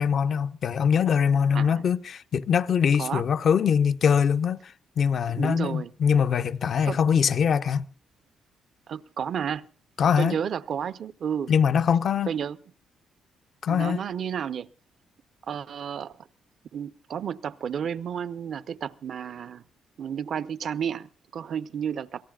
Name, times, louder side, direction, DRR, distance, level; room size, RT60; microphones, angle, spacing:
voice 1, 0.0-7.9 10.0-10.4 11.5-12.3 13.6-14.0, left 7 dB, 55° left, 0.8 m, -23 dB
voice 2, 5.3-5.9 6.8-7.0 8.9-9.7 10.2-11.5 12.3-12.6 13.7-14.7 15.5-16.1 16.7-19.6 20.0-22.2, right 8 dB, 60° right, 0.7 m, -31 dB
27.5 x 17.5 x 2.4 m
cardioid pair, 90°, 0 cm